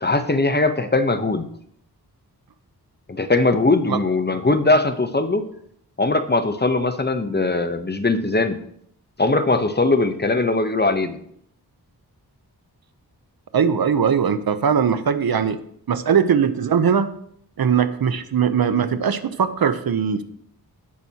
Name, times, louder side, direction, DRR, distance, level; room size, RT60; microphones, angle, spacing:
voice 1, 0.0-1.5 3.1-5.5 6.0-8.6 9.2-11.2, left 2 dB, 25° left, 9 dB, 0.8 m, -20 dB
voice 2, 13.5-15.6 15.9-17.1 17.6-20.2, right 7 dB, 65° right, 12 dB, 0.7 m, -20 dB
15.5 x 6.0 x 2.8 m, 0.67 s
wide cardioid pair, 65°, 39 cm